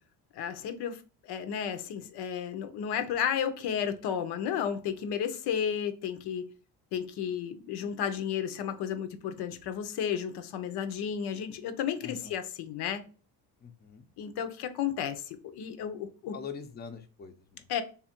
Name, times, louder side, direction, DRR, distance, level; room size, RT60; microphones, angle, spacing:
voice 1, 0.3-6.5 6.9-13.0 14.2-16.3 17.7-17.8, left 8 dB, 85° left, 0.7 m, -33 dB
voice 2, 12.0-12.4 13.6-14.1 16.3-17.7, left 6 dB, 25° left, 0.5 m, -43 dB
3.4 x 2.4 x 4.3 m
cardioid pair, 105°, 38 cm